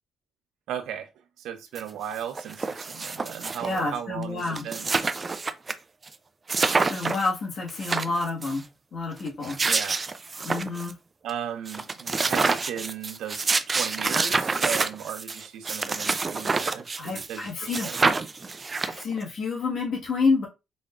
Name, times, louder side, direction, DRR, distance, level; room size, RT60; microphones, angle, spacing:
voice 1, 0.7-1.1 1.4-4.9 9.7-10.0 11.2-18.2, right 9 dB, 80° right, 0.7 m, -36 dB
sound 1, 1.8-1.9 2.1-3.8 4.2-4.3 4.5-5.7 6.1-6.2 6.5-7.3 7.7-8.6 9.3-10.9 11.3-11.4 11.7-17.4 17.7-19.2, right 4 dB, 30° right, 0.4 m, -27 dB
voice 2, 3.6-4.6 6.7-8.7 8.9-9.6 10.4-10.9 17.0-18.0 18.8-20.5, left 4 dB, 55° left, 1.5 m, -29 dB
5.0 x 3.6 x 2.4 m
cardioid pair, 90°, 0 cm